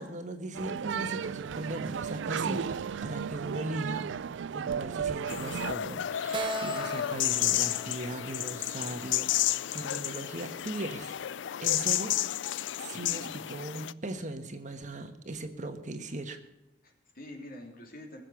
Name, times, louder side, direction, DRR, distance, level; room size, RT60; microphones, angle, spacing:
voice 1, 0.0-4.1 4.5-11.1 11.6-12.1 12.8-16.4, right 1 dB, 45° right, 7 dB, 1.3 m, -38 dB
sound 1, 0.5-5.7, right 7 dB, 90° right, 0.4 m, -34 dB
sound 2, 5.3-13.9, left 12 dB, 85° left, 0.4 m, -31 dB
Keyboard (musical), 6.3-9.8, right 3 dB, 25° right, 0.5 m, -40 dB
voice 2, 13.0-13.4 16.8-18.2, left 1 dB, 55° left, 2 dB, 3.2 m, -46 dB
19.5 x 7.8 x 6.4 m, 0.93 s
head